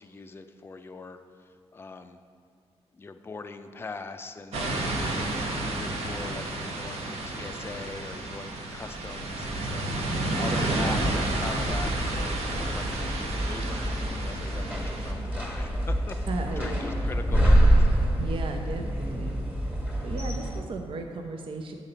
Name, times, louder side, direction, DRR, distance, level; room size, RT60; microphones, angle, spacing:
voice 1, 0.0-2.2 2.9-16.2 16.6-17.9, left 3 dB, 20° left, 8 dB, 0.4 m, -41 dB
sound 1, 4.5-15.1, right 2 dB, 80° right, 1.0 m, -31 dB
sound 2, 10.6-20.6, equal, 10° right, 1.4 m, -26 dB
voice 2, 16.3-16.8 18.1-19.3 19.7-21.7, right 3 dB, 55° right, 3 dB, 0.6 m, -35 dB
7.4 x 4.0 x 6.6 m, 2.2 s
cardioid pair, 105°, 11 cm